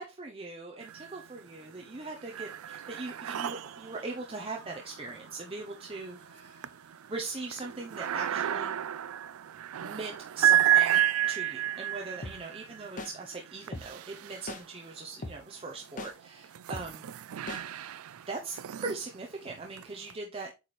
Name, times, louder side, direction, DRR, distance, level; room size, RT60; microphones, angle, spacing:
voice 1, 0.0-6.7 7.1-8.8 9.8-11.0 11.3-17.0 18.3-20.5, right 3 dB, 25° right, 0 dB, 0.8 m, -40 dB
sound 1, 0.8-1.5 1.8-15.0 15.6-20.1, right 10 dB, 80° right, 0.4 m, -32 dB
sound 2, 1.7-8.1, right 2 dB, 50° right, 2.3 m, -58 dB
sound 3, 12.2-12.4 13.0-13.1 13.7-13.9 14.5-14.6 15.2-15.4 16.0-16.1 16.7-16.9 17.5-17.6, left 2 dB, 35° left, 0.8 m, -38 dB
8.5 x 3.3 x 4.2 m, 0.27 s
head